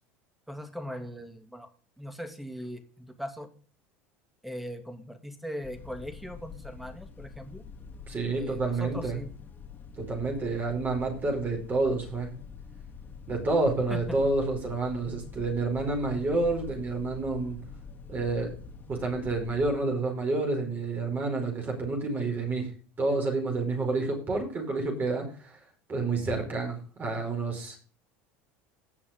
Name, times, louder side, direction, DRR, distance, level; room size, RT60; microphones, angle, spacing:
voice 1, 0.5-1.7 2.0-3.5 4.4-7.7 8.3-9.3 13.9-14.0, equal, ahead, 8 dB, 2.5 m, -40 dB
sound 1, 5.6-19.8, left 5 dB, 30° left, 4.0 m, -45 dB
voice 2, 8.1-9.2 10.0-12.3 13.3-17.6 18.1-18.5 18.9-22.7 23.0-25.6 25.9-27.8, right 3 dB, 30° right, 1 dB, 4.9 m, -29 dB
18.0 x 6.1 x 3.7 m, 0.38 s
hypercardioid pair, 90°, 6 cm